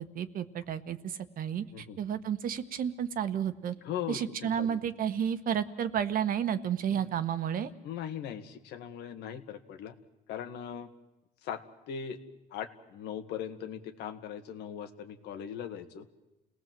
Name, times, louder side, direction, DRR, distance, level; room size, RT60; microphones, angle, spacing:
voice 1, 0.0-3.7 4.1-7.7, right 9 dB, 55° right, 11 dB, 1.4 m, -32 dB
voice 2, 3.8-4.8 6.9-7.1 7.8-10.0 10.3-10.9 11.4-12.2 12.5-16.1, left 8 dB, 85° left, 7 dB, 2.0 m, -39 dB
29.5 x 18.5 x 7.7 m, 1.0 s
cardioid pair, 110°, 17 cm